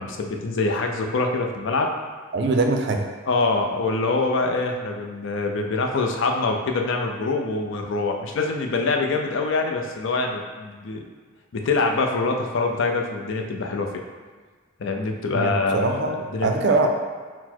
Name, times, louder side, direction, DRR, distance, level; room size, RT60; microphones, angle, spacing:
voice 1, 0.0-1.9 3.3-11.0 11.5-13.9 14.8-15.9 16.3-16.5, left 3 dB, 60° left, 3 dB, 0.4 m, -24 dB
voice 2, 2.3-3.0 15.3-16.2 16.4-16.9, right 3 dB, 50° right, 3 dB, 0.4 m, -22 dB
4.1 x 2.0 x 4.3 m, 1.5 s
head